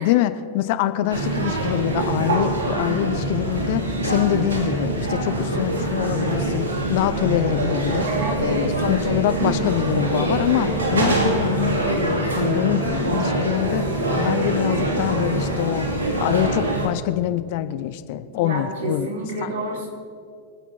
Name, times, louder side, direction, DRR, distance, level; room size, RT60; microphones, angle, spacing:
voice 1, 0.0-8.1 8.4-15.9 16.2-19.1 19.4-19.5, left 13 dB, 50° left, 12 dB, 0.7 m, -25 dB
sound 1, 1.1-16.9, right 2 dB, 70° right, 2.4 m, -24 dB
voice 2, 8.1-8.7 18.3-19.9, right 2 dB, 55° right, -4 dB, 4.6 m, -29 dB
25.0 x 8.4 x 4.4 m, 2.3 s
figure-of-eight pair, 90°, 0 cm